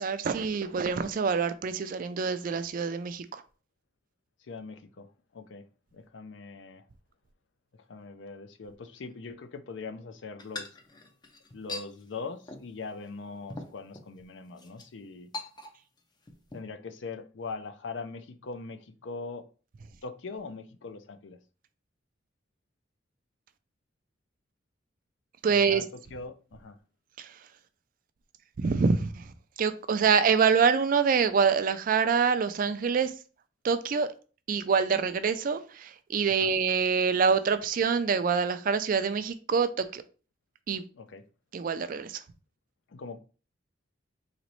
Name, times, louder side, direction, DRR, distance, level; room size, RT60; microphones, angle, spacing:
voice 1, 0.0-3.4 25.4-25.8 27.2-27.3 28.6-29.3 29.6-33.1 33.6-34.1 34.5-40.0 40.7-40.8 41.5-42.2, right 6 dB, 45° right, 0.3 m, -26 dB
voice 2, 4.4-6.9 7.7-10.8 11.5-15.3 16.5-19.5 20.0-21.4 25.5-26.8 36.3-36.5 40.9-41.3 42.9-43.2, left 4 dB, 75° left, 0.5 m, -41 dB
sound 1, 10.4-11.9 12.5-12.7 13.1-13.2 13.5-14.1 14.6-14.9 15.3-16.0 16.3-16.6, left 2 dB, 25° left, 0.4 m, -41 dB
4.0 x 3.0 x 3.1 m
head